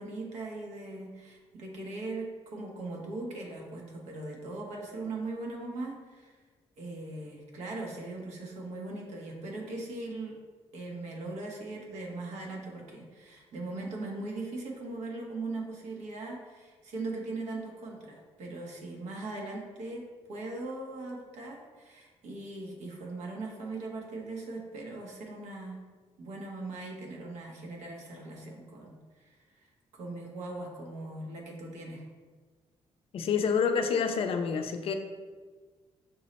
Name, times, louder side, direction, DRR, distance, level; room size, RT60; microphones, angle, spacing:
voice 1, 0.0-6.3 6.8-10.4 10.7-20.0 20.3-25.8 26.2-29.7 29.9-32.0, right 2 dB, 85° right, -1 dB, 0.9 m, -40 dB
voice 2, 33.1-34.9, left 6 dB, 60° left, 7 dB, 0.4 m, -28 dB
5.3 x 2.1 x 4.0 m, 1.4 s
cardioid pair, 125°, 11 cm